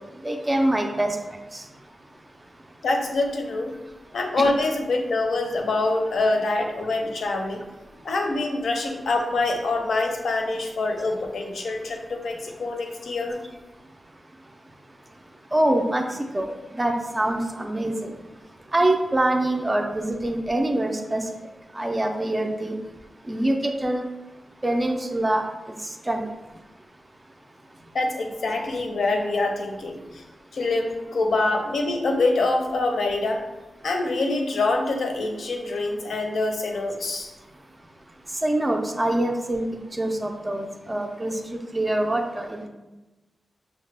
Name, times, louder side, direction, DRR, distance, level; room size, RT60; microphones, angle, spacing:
voice 1, 0.2-1.1 15.5-16.0 16.3-16.4 16.8-18.1 18.7-21.2 21.8-22.8 23.3-24.0 24.6-25.4 26.1-26.2 38.4-39.7 40.0-42.7, right 1 dB, 15° right, 3 dB, 0.3 m, -24 dB
voice 2, 2.8-3.7 4.1-7.6 8.0-13.4 27.9-30.2 30.5-33.4 33.8-37.3, left 2 dB, 75° left, 3 dB, 0.6 m, -25 dB
5.6 x 2.1 x 3.2 m, 1.1 s
wide cardioid pair, 175°, 0 cm